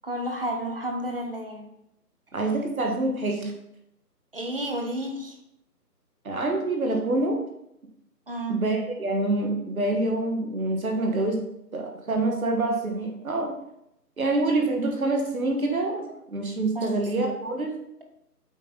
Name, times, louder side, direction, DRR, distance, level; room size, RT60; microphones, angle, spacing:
voice 1, 0.0-1.7 4.3-5.4 8.3-8.6 16.1-16.2 16.7-16.9, right 1 dB, 35° right, 3 dB, 1.0 m, -31 dB
voice 2, 2.3-3.5 6.2-7.4 8.5-11.4 11.7-13.5 14.2-17.7, right 2 dB, 60° right, 2 dB, 1.6 m, -26 dB
8.0 x 4.4 x 4.0 m, 0.79 s
figure-of-eight pair, 170°, 49 cm